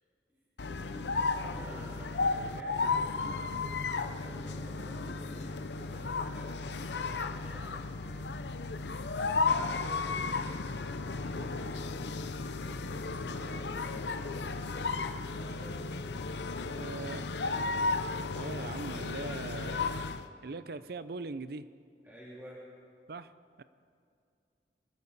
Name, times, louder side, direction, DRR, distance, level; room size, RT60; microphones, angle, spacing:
sound 1, 0.6-20.3, left 4 dB, 75° left, 0.6 m, -34 dB
voice 1, 0.6-8.2 9.6-10.9 11.2-11.6 11.9-16.0 22.0-22.6, equal, 10° right, -7 dB, 3.4 m, -50 dB
voice 2, 16.7-17.3 18.3-19.9 20.4-21.7 23.1-23.3 23.6-23.7, right 3 dB, 60° right, 14 dB, 0.5 m, -41 dB
25.0 x 13.0 x 4.1 m, 2.3 s
head